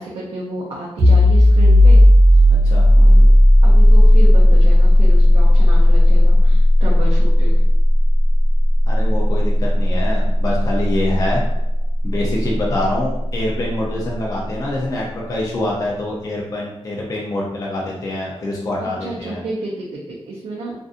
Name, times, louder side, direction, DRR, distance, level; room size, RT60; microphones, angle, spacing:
voice 1, 0.0-2.0 2.9-3.3 3.6-7.5 18.8-20.8, right 2 dB, 80° right, -4 dB, 0.5 m, -31 dB
sound 1, 1.0-12.4, left 1 dB, 35° right, 0.7 m, -12 dB
voice 2, 8.9-11.4 12.0-19.4, left 1 dB, 35° left, -3 dB, 0.4 m, -25 dB
2.5 x 2.5 x 2.4 m, 0.89 s
wide cardioid pair, 160°, 11 cm